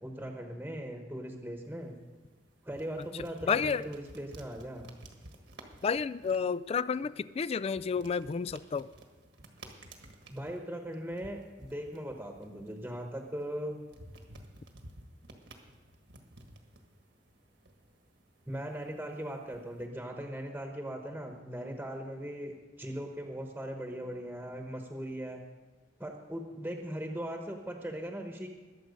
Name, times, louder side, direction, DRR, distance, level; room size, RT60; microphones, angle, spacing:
voice 1, 0.0-2.0 2.6-4.9 10.3-13.8 18.5-25.4 26.0-28.5, equal, 10° right, 3 dB, 1.1 m, -39 dB
sound 1, 1.6-19.9, right 1 dB, 70° right, 1.5 m, -55 dB
voice 2, 3.1-3.9 5.8-8.9, left 6 dB, 35° left, 18 dB, 0.3 m, -31 dB
21.0 x 7.5 x 5.2 m, 1.3 s
head